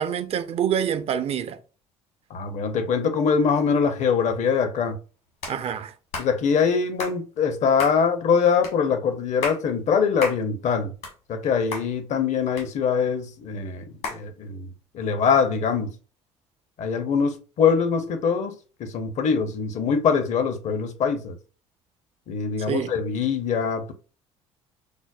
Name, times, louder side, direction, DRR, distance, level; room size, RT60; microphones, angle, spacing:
voice 1, 0.0-1.6 5.5-5.9 22.7-22.9, right 8 dB, 40° right, 0.4 m, -26 dB
voice 2, 2.3-5.0 6.2-10.9 11.3-14.7 14.9-15.9 16.8-18.5 18.8-21.4 22.3-23.9, left 6 dB, 50° left, 0.6 m, -23 dB
sound 1, 5.4-5.6 6.1-6.3 7.0-7.2 7.8-8.0 8.6-8.8 9.2-9.6 10.2-10.4 10.8-11.4 11.7-11.9 12.6-13.1 14.0-14.2, left 3 dB, 70° left, 1.3 m, -32 dB
4.9 x 2.0 x 2.3 m
hypercardioid pair, 60°, 15 cm